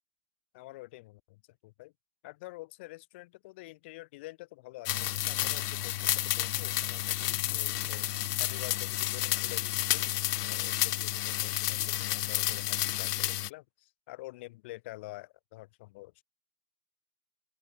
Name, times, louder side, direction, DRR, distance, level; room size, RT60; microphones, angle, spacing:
voice 1, 0.5-1.9 2.2-8.1 8.4-16.2, left 20 dB, 10° left, 0.4 m, -48 dB
sound 1, 4.8-13.5, left 14 dB, 90° left, 0.8 m, -31 dB
open air
supercardioid pair, 170°, 46 cm